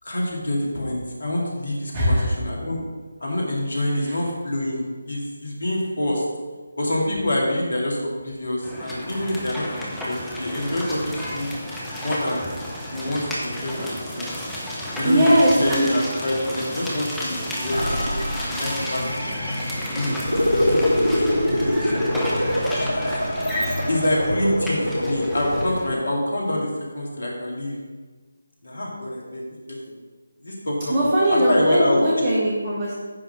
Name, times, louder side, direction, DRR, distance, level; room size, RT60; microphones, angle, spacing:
voice 1, 0.0-2.8 3.2-6.2 6.8-11.5 12.0-12.5 12.9-14.3 15.0-15.3 15.6-19.2 19.9-22.9 23.9-26.7 26.9-27.8 28.6-29.4 29.7-29.9 30.4-32.0, left 1 dB, 60° left, -3 dB, 2.3 m, -26 dB
voice 2, 1.9-2.3 4.0-4.1 15.0-15.9 30.9-32.9, equal, 25° right, -6 dB, 1.4 m, -20 dB
sound 1, 8.6-25.9, equal, ahead, 1.0 m, -32 dB
sound 2, 17.7-25.7, equal, 85° left, 1.0 m, -24 dB
9.8 x 3.7 x 5.6 m, 1.3 s
figure-of-eight pair, 155°, 0 cm